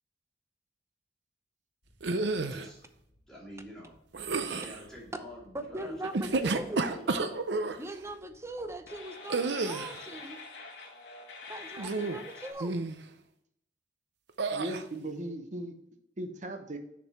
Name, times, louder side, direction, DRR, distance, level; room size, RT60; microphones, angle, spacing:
sound 1, 1.8-12.5, left 3 dB, 75° left, 1.5 m, -50 dB
sound 2, 2.0-2.7 4.1-4.8 6.0-7.8 9.3-10.0 11.8-12.3 12.6-13.0 14.4-14.8, right 3 dB, 75° right, 0.6 m, -31 dB
voice 1, 2.3-2.8 3.3-4.0 4.3-7.4, equal, 5° left, -6 dB, 2.8 m, -48 dB
voice 2, 5.5-6.8 7.8-10.4 11.5-12.7, right 1 dB, 15° right, 8 dB, 0.7 m, -40 dB
voice 3, 14.5-15.7 16.2-16.8, right 1 dB, 45° right, 6 dB, 1.0 m, -37 dB
6.9 x 5.2 x 4.2 m, 0.78 s
head